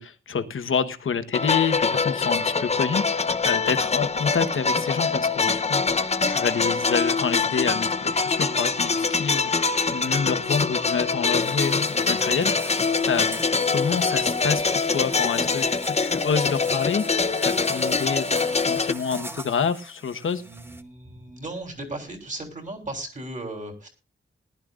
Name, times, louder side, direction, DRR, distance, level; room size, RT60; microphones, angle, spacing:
voice 1, 0.0-6.0 6.2-18.3 18.7-20.4, left 6 dB, 85° left, 10 dB, 1.1 m, -28 dB
sound 1, 1.3-18.9, left 4 dB, 30° left, 0.8 m, -24 dB
sound 2, 11.4-20.8, right 1 dB, 10° right, 1.0 m, -41 dB
voice 2, 20.4-23.9, right 2 dB, 40° right, 3 dB, 3.4 m, -36 dB
19.0 x 12.0 x 2.5 m, 0.30 s
wide cardioid pair, 165°, 20 cm